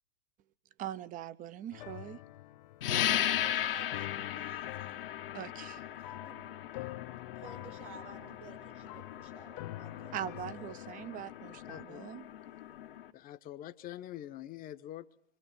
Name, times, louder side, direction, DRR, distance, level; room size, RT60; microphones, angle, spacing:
voice 1, 0.8-2.2 5.3-5.8 10.1-12.3, right 11 dB, 30° right, 0.8 m, -41 dB
sound 1, 1.7-11.8, left 16 dB, 50° left, 0.7 m, -47 dB
sound 2, 2.8-13.1, left 11 dB, 70° left, 1.3 m, -37 dB
voice 2, 3.0-4.9 6.2-6.5 7.4-10.2, right 3 dB, 70° right, 7.2 m, -53 dB
voice 3, 11.5-12.0 13.1-15.1, left 13 dB, 30° left, 1.0 m, -45 dB
26.5 x 25.0 x 4.3 m
hypercardioid pair, 110°, 29 cm